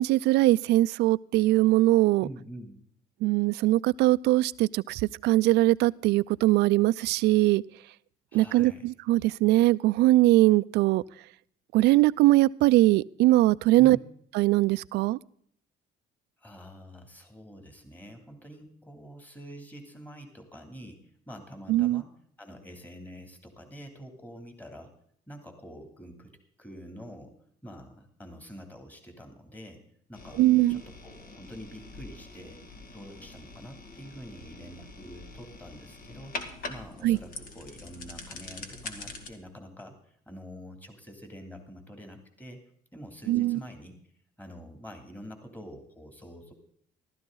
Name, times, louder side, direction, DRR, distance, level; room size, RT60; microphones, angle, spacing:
voice 1, 0.0-2.3 3.2-7.6 8.3-11.0 11.7-14.0 14.3-15.2 21.7-22.0 30.4-30.8 37.0-37.2 43.3-43.6, right 17 dB, 80° right, 0.4 m, -21 dB
voice 2, 2.2-2.8 8.3-8.9 13.8-14.0 16.4-22.1 22.4-24.9 25.3-26.3 26.6-27.3 27.6-29.8 30.1-32.6 32.9-36.3 36.7-42.6 42.9-43.9 44.4-46.5, equal, 10° left, 2.9 m, -46 dB
sound 1, 30.1-39.3, left 3 dB, 55° left, 2.1 m, -44 dB
15.0 x 13.0 x 3.9 m
cardioid pair, 110°, 17 cm